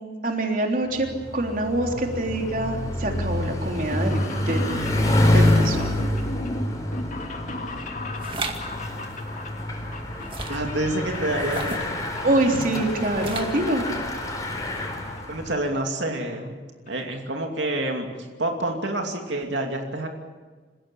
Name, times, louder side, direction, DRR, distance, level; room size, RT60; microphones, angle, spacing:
voice 1, 0.0-4.2 4.4-4.9 5.2-5.9 12.2-13.9, right 1 dB, 50° right, 2 dB, 3.4 m, -25 dB
Bicycle, 0.9-15.6, left 1 dB, 20° left, 4.3 m, -27 dB
sound 1, 3.9-11.5 11.8-12.5 12.8-13.9 14.1-14.2 15.2-15.3 15.5-15.6 15.8-15.9 16.2-16.5 16.9-17.0 17.1-17.2, left 2 dB, 45° left, 2.6 m, -36 dB
sound 2, 8.2-8.6 10.2-10.7 11.4-11.9 13.1-13.6, right 3 dB, 30° right, 2.1 m, -33 dB
voice 2, 10.5-12.0 15.3-16.6 16.9-20.1, right 1 dB, 85° right, 3 dB, 2.7 m, -28 dB
28.0 x 16.5 x 8.8 m, 1.4 s
head